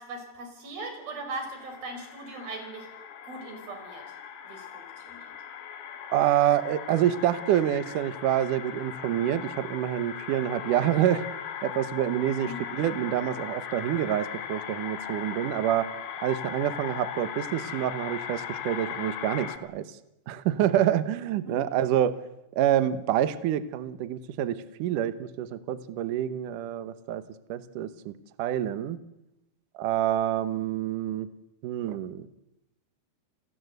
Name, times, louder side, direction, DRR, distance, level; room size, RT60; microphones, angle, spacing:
voice 1, 0.0-2.9 3.2-4.0 4.4-5.4 12.4-12.6 21.4-21.6, right 2 dB, 55° right, 5 dB, 6.7 m, -39 dB
sound 1, 1.4-19.6, left 8 dB, 75° left, 3.9 m, -39 dB
voice 2, 6.1-11.3 11.6-15.9 16.2-20.0 20.3-22.2 22.5-27.2 27.5-28.1 28.4-29.0 29.7-31.3 31.6-32.3, right 11 dB, 75° right, 13 dB, 2.0 m, -27 dB
30.0 x 19.0 x 8.0 m, 0.90 s
omnidirectional pair, 5.1 m